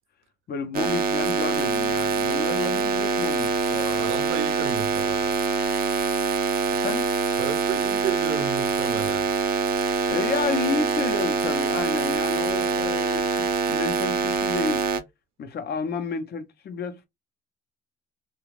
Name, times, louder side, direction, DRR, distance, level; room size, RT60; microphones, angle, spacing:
voice 1, 0.5-4.1 6.7-7.1 10.1-14.9 15.4-17.1, left 5 dB, 55° left, 0.8 m, -31 dB
sound 1, 0.7-15.0, right 5 dB, 45° right, 0.6 m, -24 dB
voice 2, 4.0-5.4 7.4-9.3, right 8 dB, 85° right, 0.6 m, -32 dB
2.4 x 2.4 x 3.1 m
cardioid pair, 90°, 20 cm